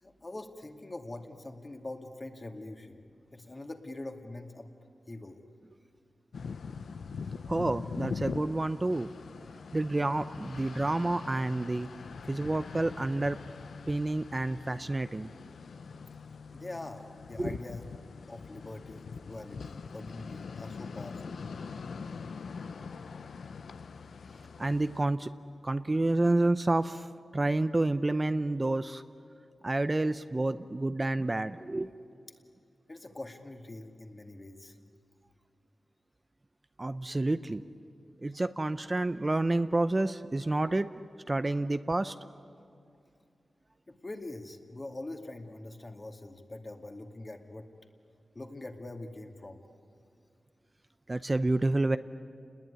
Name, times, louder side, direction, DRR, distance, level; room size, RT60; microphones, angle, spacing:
voice 1, 0.0-3.0 3.3-4.7 5.1-5.4 16.5-17.9 18.3-19.0 19.3-21.4 32.9-34.8 43.9-47.7 48.3-49.6, left 2 dB, 35° left, 4 dB, 2.3 m, -43 dB
sound 1, 6.3-25.0, left 5 dB, 85° left, 0.7 m, -42 dB
voice 2, 7.5-9.1 9.7-11.9 12.3-13.4 13.9-15.3 17.4-17.6 24.6-25.3 25.6-27.1 27.3-29.0 29.6-31.9 36.8-37.6 38.2-40.9 41.3-42.1 51.1-52.0, right 2 dB, 30° right, 11 dB, 0.6 m, -29 dB
29.5 x 20.0 x 9.9 m, 2.4 s
wide cardioid pair, 70°, 0 cm